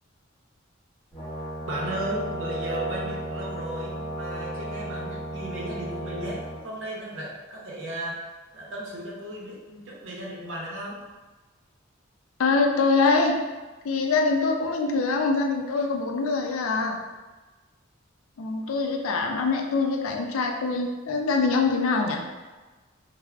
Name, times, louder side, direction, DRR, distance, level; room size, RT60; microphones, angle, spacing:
Brass instrument, 1.1-6.6, right 1 dB, 25° left, 1.0 m, -34 dB
voice 1, 1.6-11.0, right 1 dB, 65° right, -4 dB, 0.7 m, -35 dB
voice 2, 12.4-13.4 13.8-17.0 18.4-22.2, left 3 dB, 85° left, 2 dB, 0.4 m, -24 dB
3.3 x 2.0 x 2.3 m, 1.2 s
head